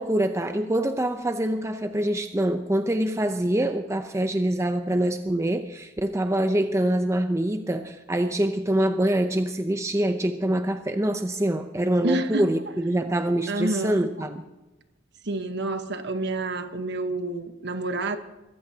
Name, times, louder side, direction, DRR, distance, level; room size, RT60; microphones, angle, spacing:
voice 1, 0.0-14.4, right 1 dB, 15° right, 0.6 m, -25 dB
voice 2, 12.0-12.5 13.5-14.1 15.2-18.2, right 2 dB, 55° right, 1.2 m, -28 dB
22.5 x 15.0 x 2.9 m
head